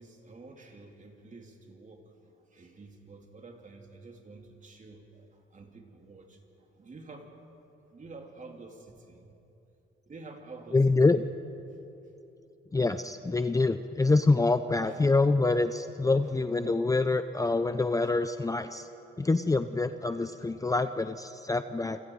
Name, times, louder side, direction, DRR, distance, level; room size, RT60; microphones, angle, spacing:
voice 1, 0.0-7.3 7.9-9.4 10.1-10.8 11.1-11.2 11.7-11.8 14.8-15.0 16.2-16.4 18.0-18.1 20.5-20.7, right 3 dB, 40° right, 2 dB, 3.1 m, -50 dB
voice 2, 10.7-11.2 12.7-18.9 19.2-22.0, left 3 dB, 15° left, 10 dB, 0.6 m, -26 dB
28.0 x 26.0 x 4.7 m, 2.9 s
cardioid pair, 105°, 21 cm